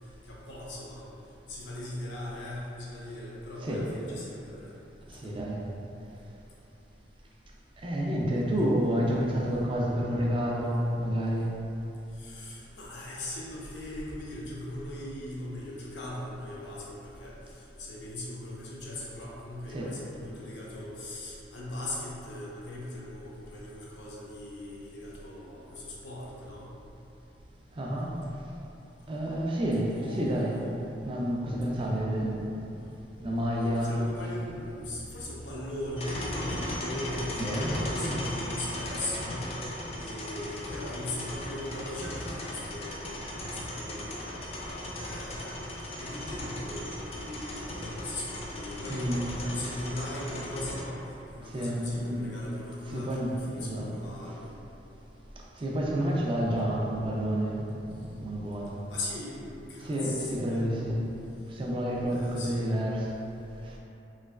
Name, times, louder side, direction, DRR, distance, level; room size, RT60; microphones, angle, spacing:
voice 1, 0.2-1.0 1.5-4.7 12.1-26.7 29.7-30.6 33.5-44.4 44.9-45.5 45.9-51.0 51.3-54.5 58.9-59.4 59.7-60.7 62.1-62.7, left 1 dB, 85° left, -5 dB, 0.7 m, -39 dB
voice 2, 5.1-5.7 7.8-11.6 19.7-20.0 27.8-28.2 29.1-30.6 31.0-32.5 33.2-34.0 37.4-38.2 48.9-49.2 51.5-52.3 52.9-53.9 55.6-58.8 59.8-61.0 61.5-63.1 63.6-63.8, equal, 30° right, -3 dB, 0.4 m, -29 dB
sound 1, 36.0-50.8, left 1 dB, 35° left, 0.4 m, -37 dB
3.1 x 2.9 x 2.3 m, 2.9 s
head